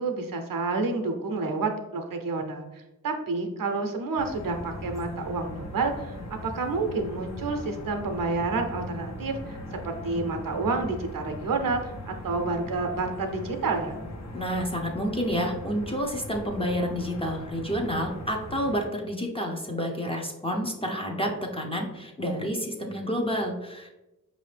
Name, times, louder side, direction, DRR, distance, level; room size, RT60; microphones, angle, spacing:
voice 1, 0.0-6.2 6.4-9.6 9.8-13.9, right 3 dB, 65° right, 5 dB, 0.7 m, -29 dB
sound 1, 4.2-18.8, left 1 dB, 50° left, 0.8 m, -39 dB
voice 2, 14.3-23.9, equal, 15° left, 0 dB, 0.6 m, -29 dB
4.9 x 2.6 x 3.3 m, 0.99 s
cardioid pair, 65°, 35 cm